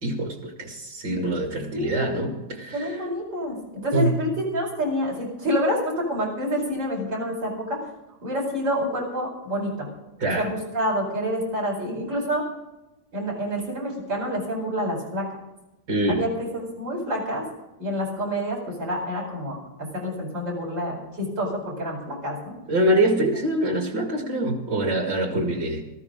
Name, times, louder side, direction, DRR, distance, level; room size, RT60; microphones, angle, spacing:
voice 1, 0.0-3.0 3.9-4.2 10.2-10.5 15.9-16.3 22.7-25.8, right 1 dB, 70° right, 2 dB, 3.1 m, -24 dB
voice 2, 1.7-2.3 2.7-3.6 3.8-7.8 8.2-9.9 10.4-12.4 13.1-15.2 16.1-16.5 16.8-17.4 17.8-22.5, equal, 90° right, -3 dB, 5.7 m, -27 dB
18.0 x 14.5 x 3.8 m, 0.98 s
omnidirectional pair, 2.0 m